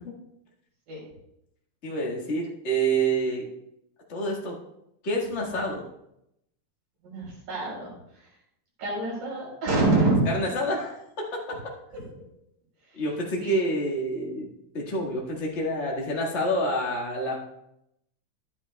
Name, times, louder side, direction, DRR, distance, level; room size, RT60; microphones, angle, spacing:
voice 1, 1.8-3.5 4.1-4.6 5.0-5.9 10.3-11.7 12.9-14.5 14.7-17.4, right 1 dB, 30° left, -2 dB, 1.3 m, -28 dB
voice 2, 7.0-8.3 8.8-10.3 11.9-12.0 12.9-13.0 13.4-13.6, right 2 dB, 85° right, -4 dB, 5.5 m, -26 dB
12.0 x 9.7 x 2.3 m, 0.80 s
omnidirectional pair, 3.6 m